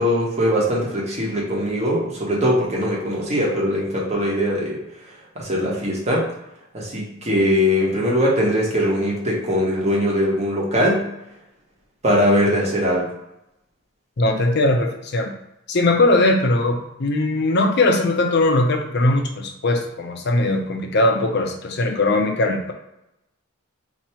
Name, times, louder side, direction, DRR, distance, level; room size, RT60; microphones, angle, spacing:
voice 1, 0.0-4.8 5.3-6.3 6.7-11.1 12.0-13.1, equal, 30° right, -4 dB, 1.1 m, -21 dB
voice 2, 14.2-15.3 15.7-22.7, left 2 dB, 50° left, 4 dB, 0.5 m, -20 dB
2.8 x 2.8 x 4.3 m, 0.89 s
head